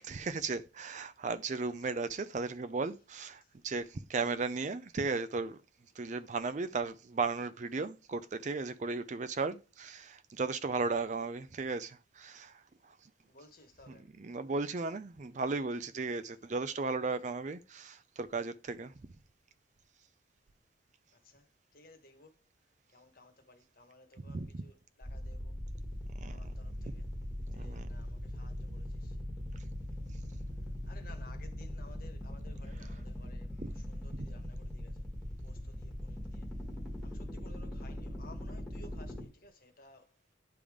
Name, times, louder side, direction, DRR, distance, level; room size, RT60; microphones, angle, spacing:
voice 1, 0.0-5.6 6.0-12.5 13.9-18.9 24.2-24.6 26.2-26.5 27.5-28.0 33.6-33.7 34.1-34.3, right 4 dB, 35° right, 0.4 m, -36 dB
voice 2, 1.7-2.0 3.4-3.5 6.0-6.2 13.2-14.1 21.2-22.4 22.9-25.6 26.3-27.0 27.4-29.2 30.8-35.0 35.4-36.5 37.0-40.1, left 2 dB, 45° left, 1.3 m, -58 dB
sound 1, 25.0-39.2, left 1 dB, 5° left, 1.5 m, -41 dB
10.0 x 3.5 x 4.9 m
head